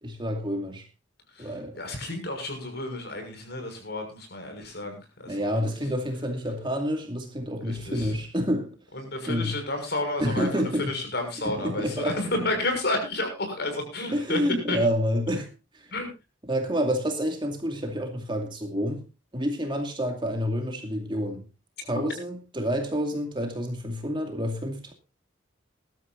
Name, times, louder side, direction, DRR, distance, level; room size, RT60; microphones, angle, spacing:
voice 1, 0.0-0.8 1.4-1.8 5.3-8.8 9.3-9.6 10.2-10.9 11.4-12.2 14.1-15.5 15.7-15.9 16.5-19.1 19.3-21.5 21.8-24.9, equal, 25° right, 2.4 m, -28 dB
voice 2, 1.3-5.4 7.6-8.2 8.9-14.4 14.7-14.8 15.9-16.1, left 2 dB, 55° left, 6.2 m, -31 dB
21.5 x 12.5 x 2.6 m
head